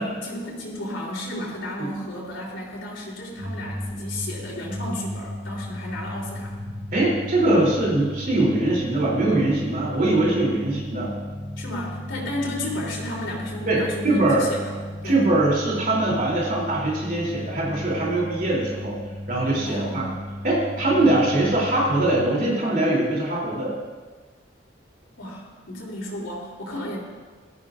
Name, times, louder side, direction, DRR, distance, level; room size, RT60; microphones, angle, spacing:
voice 1, 0.0-6.6 11.6-14.7 15.0-15.2 19.6-20.1 25.2-27.0, left 1 dB, 90° left, -4 dB, 3.5 m, -33 dB
sound 1, 3.4-22.3, left 1 dB, 90° right, 2.2 m, -35 dB
voice 2, 6.9-11.2 13.7-14.5 15.0-19.0 19.3-20.1 20.4-23.8, right 2 dB, 45° right, -5 dB, 3.1 m, -22 dB
17.0 x 13.5 x 2.5 m, 1.4 s
head